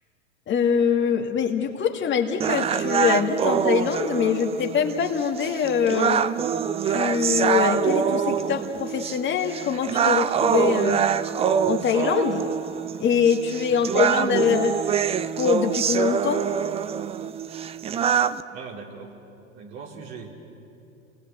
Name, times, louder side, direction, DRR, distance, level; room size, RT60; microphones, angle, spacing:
voice 1, 0.5-6.3 6.8-11.0 11.7-12.4 13.0-14.8 15.4-16.4, left 7 dB, 30° left, 4 dB, 2.0 m, -23 dB
sound 1, 2.4-18.4, right 8 dB, 15° right, 0.5 m, -25 dB
voice 2, 18.5-19.1 19.5-20.4, right 5 dB, 55° right, 0 dB, 4.6 m, -40 dB
27.5 x 20.0 x 8.1 m, 2.8 s
hypercardioid pair, 100°, 38 cm